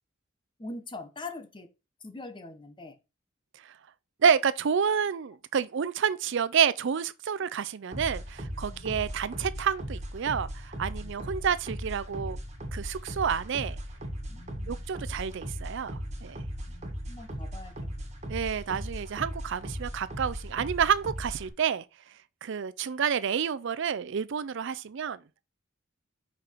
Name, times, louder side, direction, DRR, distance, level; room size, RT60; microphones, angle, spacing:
voice 1, 0.6-1.7 2.0-3.0 8.7-9.0 11.0-11.1 14.3-14.9 16.7-18.0, left 2 dB, 25° left, 0.9 m, -43 dB
voice 2, 4.2-12.4 12.7-13.8 14.7-16.4 18.3-21.8 22.4-25.2, right 7 dB, 65° right, 0.5 m, -29 dB
sound 1, 7.9-21.5, equal, 35° right, 1.8 m, -38 dB
5.7 x 5.0 x 4.4 m
head